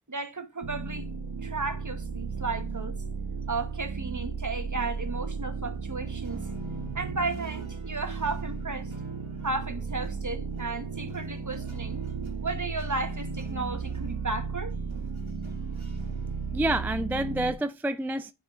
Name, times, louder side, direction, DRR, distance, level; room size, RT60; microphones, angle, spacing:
voice 1, 0.1-1.1 1.4-3.0 3.5-6.4 6.9-8.9 9.4-12.0 12.4-14.7, right 3 dB, 40° right, 1.3 m, -34 dB
sound 1, 0.6-17.5, right 5 dB, 60° right, 1.1 m, -35 dB
sound 2, 6.0-17.2, right 4 dB, 85° right, 1.7 m, -50 dB
voice 2, 16.5-18.3, right 1 dB, 5° right, 0.4 m, -28 dB
9.8 x 5.5 x 2.5 m
wide cardioid pair, 45°, 46 cm